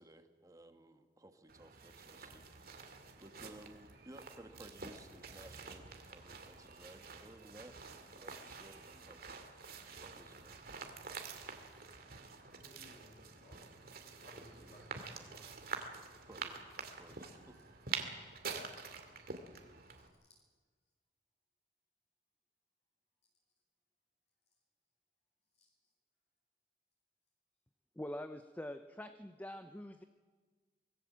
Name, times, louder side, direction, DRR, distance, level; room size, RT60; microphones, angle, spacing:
voice 1, 0.0-2.4 3.2-7.7 8.1-9.4 10.0-10.6 14.5-14.8 16.3-17.6, right 1 dB, 20° right, 7 dB, 1.5 m, -57 dB
sound 1, 1.5-20.1, right 5 dB, 55° right, 2.3 m, -48 dB
voice 2, 12.6-13.6 14.2-15.5, left 1 dB, 40° left, -2 dB, 5.7 m, -60 dB
voice 3, 28.0-30.0, left 1 dB, 10° left, 9 dB, 0.6 m, -45 dB
25.0 x 19.5 x 7.5 m, 1.5 s
head